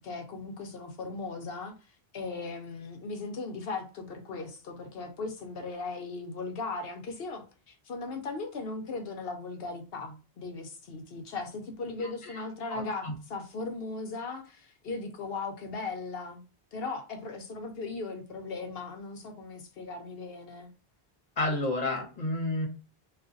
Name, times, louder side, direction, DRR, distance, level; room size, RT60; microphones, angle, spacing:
voice 1, 0.0-1.7 2.1-16.4 16.7-20.7, left 3 dB, 70° left, 1.0 m, -38 dB
voice 2, 12.0-12.4 13.0-13.1 21.4-22.7, left 2 dB, 40° left, 1.2 m, -30 dB
2.5 x 2.4 x 3.8 m
omnidirectional pair, 1.0 m